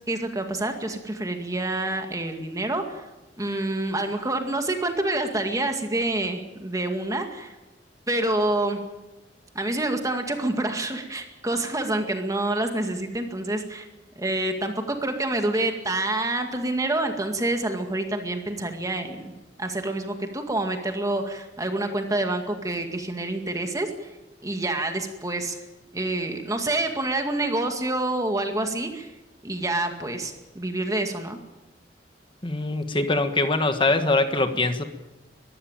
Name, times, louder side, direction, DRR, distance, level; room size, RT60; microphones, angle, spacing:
voice 1, 0.1-3.0 3.4-7.6 8.1-8.8 9.5-13.9 14.2-19.3 19.6-23.9 24.4-25.6 25.9-29.1 29.4-31.4, right 2 dB, 20° right, 5 dB, 2.0 m, -27 dB
voice 2, 32.4-34.8, left 2 dB, 30° left, 8 dB, 1.5 m, -23 dB
22.5 x 15.0 x 9.0 m, 1.0 s
head